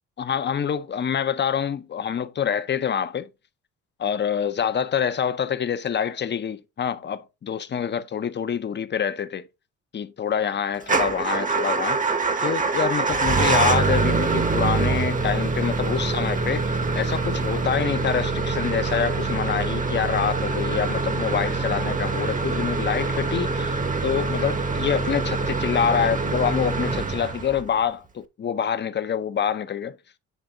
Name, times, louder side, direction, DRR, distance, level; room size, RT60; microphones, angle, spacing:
voice 1, 0.2-3.3 4.0-9.4 9.9-12.1 12.4-30.0, left 8 dB, 35° left, 0.7 m, -26 dB
Motor vehicle (road) / Engine starting / Idling, 10.8-27.8, right 3 dB, 25° right, 1.0 m, -24 dB
9.3 x 3.4 x 3.8 m
cardioid pair, 90°, 30 cm